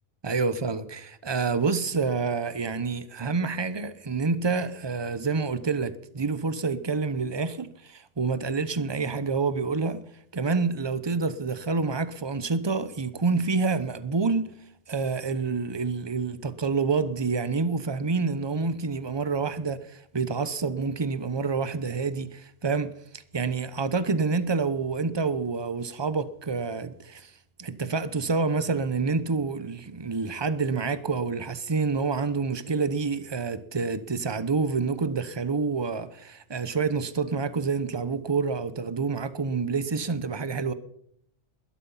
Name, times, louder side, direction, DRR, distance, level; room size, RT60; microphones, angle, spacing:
voice 1, 0.2-10.0 10.3-14.5 14.9-27.3 27.6-40.7, right 4 dB, 25° right, 0.8 m, -28 dB
21.0 x 11.5 x 5.7 m
omnidirectional pair, 1.2 m